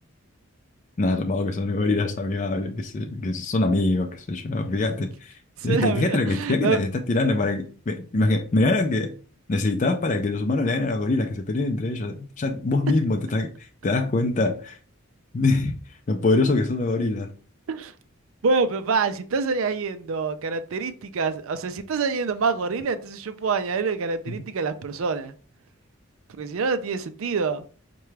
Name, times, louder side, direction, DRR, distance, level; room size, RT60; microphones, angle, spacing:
voice 1, 1.0-5.3 5.6-9.1 9.5-14.8 15.3-15.8 16.1-17.3 24.3-24.4, left 2 dB, 35° left, 0.4 m, -24 dB
voice 2, 5.6-6.8 17.7-17.9 18.4-25.3 26.3-27.7, right 4 dB, 75° right, 0.4 m, -26 dB
5.7 x 2.2 x 3.2 m
head